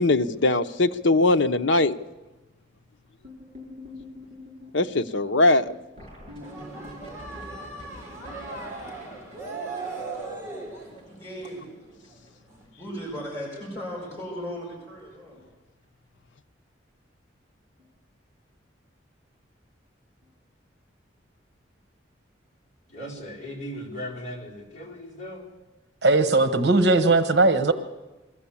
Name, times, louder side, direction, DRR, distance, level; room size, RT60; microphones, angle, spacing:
voice 1, 0.0-2.0 4.7-5.7, left 2 dB, 80° left, 0.8 m, -21 dB
sound 1, 3.2-11.5 11.7-11.8 12.0-12.3 12.6-13.1 13.4-13.7 14.5-14.6 15.0-15.1 15.4-15.5 17.8-17.9 20.2-20.3, left 1 dB, 35° right, 5.9 m, -46 dB
sound 2, 6.4-12.2 12.6-12.7, right 3 dB, 15° right, 3.5 m, -38 dB
voice 2, 11.1-11.7 12.5-15.4, equal, 15° left, 6.1 m, -37 dB
voice 3, 22.9-25.6, equal, 35° left, 4.5 m, -37 dB
voice 4, 26.0-27.7, right 2 dB, 60° right, 1.1 m, -19 dB
22.0 x 14.0 x 8.5 m
head